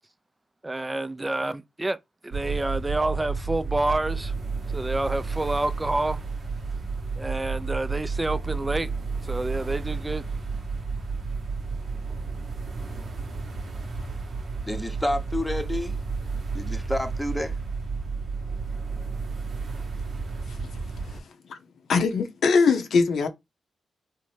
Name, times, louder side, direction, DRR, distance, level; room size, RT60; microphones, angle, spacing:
voice 1, 0.6-2.0 2.2-4.3 4.7-6.2 7.2-8.9 9.2-10.2, right 2 dB, 25° right, 0.4 m, -28 dB
sound 1, 2.3-21.2, right 4 dB, 60° right, 0.8 m, -32 dB
voice 2, 14.7-16.0 16.5-17.6, left 1 dB, 10° left, 0.8 m, -29 dB
voice 3, 20.4-21.6 21.9-23.3, left 5 dB, 75° left, 0.6 m, -23 dB
2.8 x 2.1 x 3.2 m
supercardioid pair, 45°, 0 cm